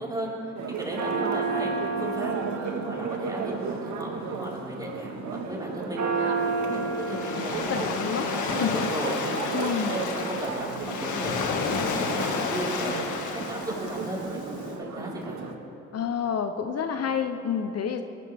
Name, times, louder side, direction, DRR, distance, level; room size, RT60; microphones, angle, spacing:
voice 1, 0.0-2.3 2.6-15.4, right 1 dB, 10° right, -5 dB, 4.8 m, -36 dB
Church bell, 0.6-15.5, right 4 dB, 70° right, 1.7 m, -32 dB
Waves surf, 6.4-14.6, left 4 dB, 75° left, 2.0 m, -31 dB
voice 2, 7.4-8.7 9.5-10.0 15.9-18.0, left 7 dB, 55° left, 7 dB, 0.9 m, -29 dB
24.0 x 16.5 x 3.6 m, 2.8 s
cardioid pair, 90°, 30 cm